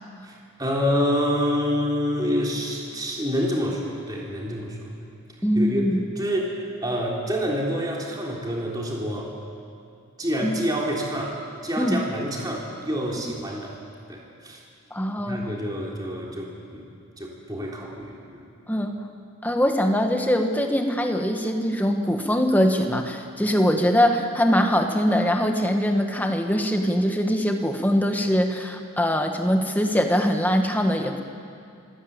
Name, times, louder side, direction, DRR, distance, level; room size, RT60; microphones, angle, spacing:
voice 1, 0.2-5.1 5.6-9.3 10.2-13.8 14.1-14.6 15.3-16.8 17.2-18.4, equal, 20° right, -2 dB, 3.5 m, -27 dB
voice 2, 5.4-6.0 10.4-10.6 11.8-12.0 14.9-15.4 18.7-19.0 19.4-31.2, equal, 10° left, 4 dB, 1.5 m, -22 dB
26.0 x 15.0 x 8.9 m, 2.4 s
head